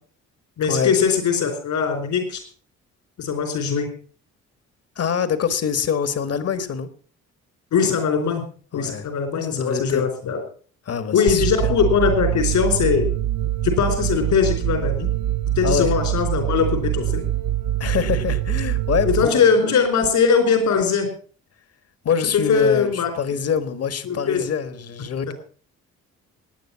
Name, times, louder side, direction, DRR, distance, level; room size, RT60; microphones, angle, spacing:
voice 1, 0.6-2.4 3.2-3.9 7.7-8.5 8.7-10.4 11.1-13.1 13.6-15.1 15.6-17.2 19.0-21.1 22.5-23.1 24.1-24.5, left 6 dB, 75° left, 6 dB, 4.4 m, -20 dB
voice 2, 4.9-6.9 8.7-9.1 9.5-10.1 10.8-11.7 15.6-15.9 17.8-19.4 22.0-25.3, left 7 dB, 55° left, 12 dB, 1.7 m, -24 dB
sound 1, 11.3-20.3, right 13 dB, 70° right, 0.6 m, -24 dB
18.5 x 9.4 x 5.8 m, 0.43 s
cardioid pair, 90°, 30 cm